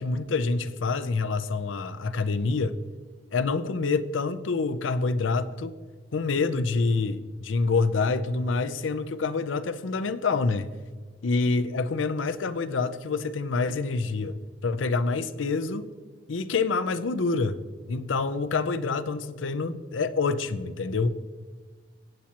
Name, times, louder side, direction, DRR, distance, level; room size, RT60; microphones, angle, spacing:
voice 1, 0.0-2.7 3.3-5.7 6.1-10.7 11.2-14.4 14.6-15.8 16.3-17.6 17.9-21.2, left 4 dB, 85° left, 0.5 m, -27 dB
15.5 x 8.6 x 2.9 m
head